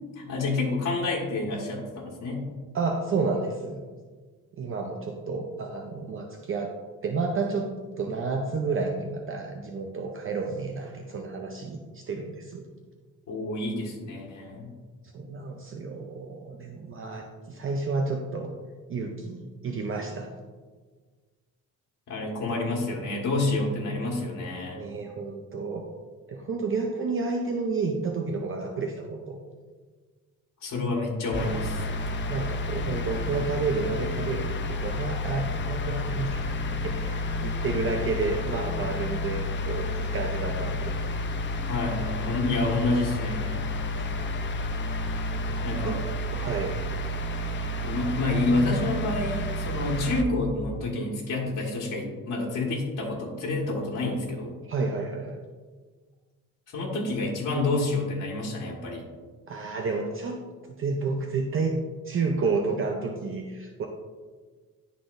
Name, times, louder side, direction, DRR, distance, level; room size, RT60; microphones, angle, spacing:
voice 1, 0.2-2.5 13.3-14.7 22.1-24.8 30.6-31.9 41.7-43.6 45.6-46.0 47.8-54.6 56.7-59.0, left 2 dB, 50° left, -5 dB, 1.6 m, -28 dB
voice 2, 2.7-3.8 4.6-6.8 7.0-7.7 8.0-12.6 15.1-18.5 18.9-20.3 24.7-25.9 26.3-29.4 32.3-40.9 41.6-41.7 45.5-46.0 46.3-46.8 54.7-55.4 59.5-60.4 60.8-61.8 62.0-63.9, right 4 dB, 35° right, 2 dB, 0.6 m, -30 dB
sound 1, 31.3-50.2, left 1 dB, 35° left, 0.6 m, -30 dB
11.5 x 4.1 x 2.6 m, 1.4 s
cardioid pair, 110°, 35 cm